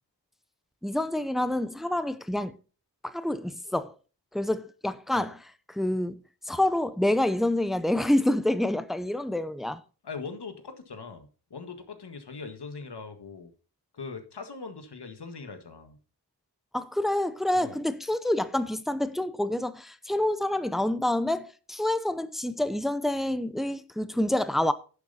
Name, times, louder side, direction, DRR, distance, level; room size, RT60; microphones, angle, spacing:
voice 1, 0.8-2.6 3.0-3.9 4.3-5.4 5.7-6.2 6.5-9.8 16.7-24.7, left 1 dB, ahead, 0.7 m, -27 dB
voice 2, 10.0-13.5 13.9-16.0 17.5-17.8, left 4 dB, 75° left, 1.7 m, -41 dB
11.0 x 7.2 x 4.1 m
wide cardioid pair, 75°, 41 cm